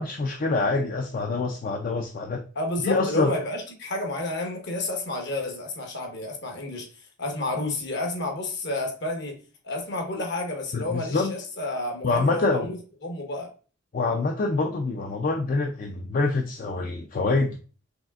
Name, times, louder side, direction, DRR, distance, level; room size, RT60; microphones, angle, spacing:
voice 1, 0.0-2.4 2.8-3.3 10.7-11.3 12.0-12.7 13.9-17.6, left 3 dB, 45° left, 0.4 m, -25 dB
voice 2, 2.5-6.9 7.2-13.5, left 2 dB, 60° left, 1.2 m, -31 dB
5.1 x 3.3 x 2.4 m
head